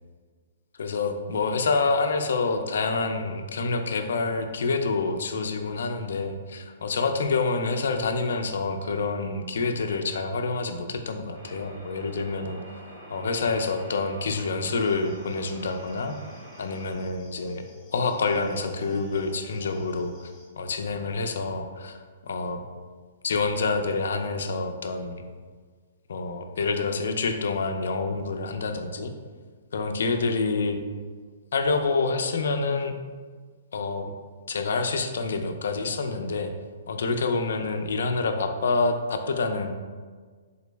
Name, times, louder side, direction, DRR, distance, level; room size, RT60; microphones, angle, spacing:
voice 1, 0.8-12.6 13.1-16.1 16.6-17.7 17.9-22.0 22.2-22.6 23.2-25.3 26.1-29.1 29.7-30.8 31.5-33.0 33.7-34.1 34.5-36.5 36.9-39.7, left 3 dB, 65° left, 6 dB, 0.3 m, -27 dB
sound 1, 11.3-16.9, right 1 dB, 45° right, 0.9 m, -46 dB
sound 2, 14.6-20.5, equal, 5° left, 0.5 m, -52 dB
3.7 x 2.0 x 3.2 m, 1.5 s
hypercardioid pair, 180°, 0 cm